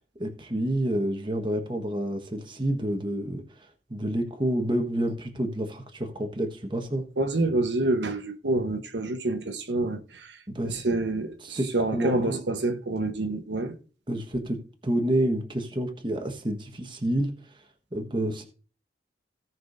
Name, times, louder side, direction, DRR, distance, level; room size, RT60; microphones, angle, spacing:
voice 1, 0.2-3.4 3.9-7.0 10.5-10.7 11.4-12.4 14.1-17.3 17.9-18.5, right 1 dB, 25° right, 1.3 m, -28 dB
voice 2, 7.2-10.4 10.6-13.7, right 2 dB, 80° right, 1.1 m, -27 dB
17.0 x 6.1 x 2.6 m
head